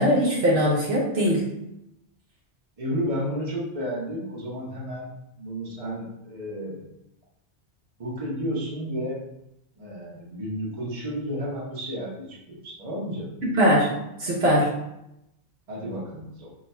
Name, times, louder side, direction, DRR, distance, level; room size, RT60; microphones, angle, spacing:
voice 1, 0.0-1.5 13.4-13.9 14.2-14.7, equal, 65° right, -4 dB, 1.0 m, -21 dB
voice 2, 2.8-6.9 8.0-9.2 9.8-13.3 15.7-16.5, equal, 35° right, -5 dB, 1.0 m, -32 dB
3.5 x 2.2 x 4.2 m, 0.85 s
omnidirectional pair, 1.2 m